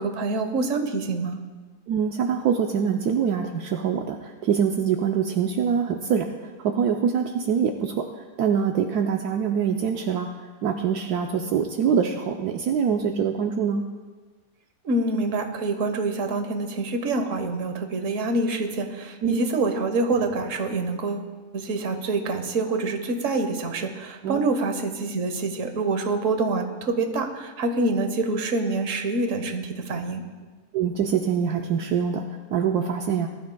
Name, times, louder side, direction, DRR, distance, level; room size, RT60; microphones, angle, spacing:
voice 1, 0.0-1.4 14.8-30.2, right 3 dB, 55° right, 6 dB, 1.4 m, -26 dB
voice 2, 1.9-13.8 19.2-19.4 24.2-24.5 30.7-33.3, right 7 dB, 75° right, 3 dB, 1.2 m, -24 dB
20.5 x 13.0 x 2.3 m, 1.3 s
omnidirectional pair, 1.7 m